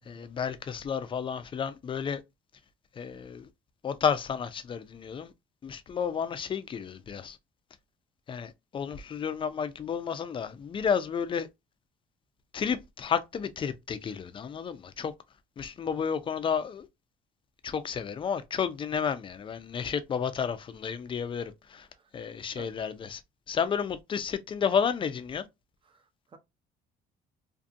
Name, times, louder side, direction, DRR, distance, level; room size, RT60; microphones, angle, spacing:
voice 1, 0.1-2.2 2.9-3.5 3.8-5.3 5.6-7.4 8.3-11.5 12.5-15.1 15.6-16.9 17.6-21.9 22.1-23.2 23.5-25.5, left 7 dB, 30° left, 0.4 m, -31 dB
voice 2, 25.8-26.4, right 4 dB, 30° right, 0.6 m, -51 dB
2.6 x 2.5 x 2.5 m
cardioid pair, 110°, 17 cm